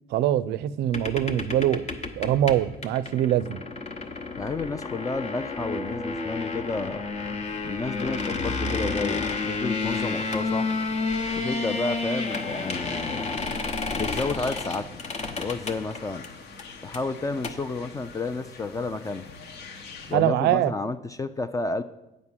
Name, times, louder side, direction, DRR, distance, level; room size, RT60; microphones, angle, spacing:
voice 1, 0.1-1.8 2.2-3.6 20.1-20.7, right 12 dB, 80° right, 16 dB, 0.4 m, -23 dB
sound 1, 0.9-16.3 16.6-16.7 16.9-17.0 17.3-17.5, left 3 dB, 40° left, 0.9 m, -30 dB
sound 2, 2.7-12.6 12.9-13.0, equal, ahead, 0.8 m, -47 dB
voice 2, 4.4-7.0 7.6-10.7 11.3-13.2 14.0-15.0 15.3-16.2 16.8-19.3 20.1-21.8, left 3 dB, 20° left, 11 dB, 0.4 m, -31 dB
sound 3, 9.9-20.1, left 4 dB, 70° left, 1.2 m, -44 dB
8.2 x 5.2 x 7.3 m, 0.94 s
cardioid pair, 110°, 17 cm